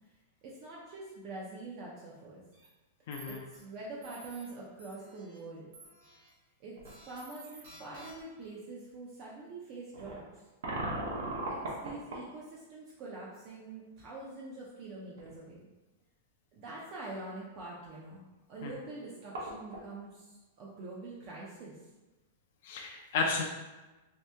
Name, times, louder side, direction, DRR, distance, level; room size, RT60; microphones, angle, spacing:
voice 1, 0.4-2.4 3.2-5.7 6.6-6.8 7.1-10.4 11.5-15.6 16.5-18.2 18.5-21.8, right 2 dB, 30° right, -5 dB, 0.4 m, -45 dB
sound 1, 2.5-2.7 3.1-3.6 4.0-4.5 4.8-5.4 5.7-6.3 6.8-8.4, right 2 dB, 55° right, 1.3 m, -53 dB
voice 2, 3.1-3.4 18.6-18.7 22.6-23.4, left 4 dB, 50° left, 0 dB, 0.4 m, -33 dB
sound 2, 6.8-6.9 7.8-7.9 9.9-12.3 14.8-14.9 15.2-15.3 18.7-18.8 19.0-19.9, right 2 dB, 75° right, 0.8 m, -38 dB
2.8 x 2.6 x 3.3 m, 1.1 s
supercardioid pair, 170°, 0 cm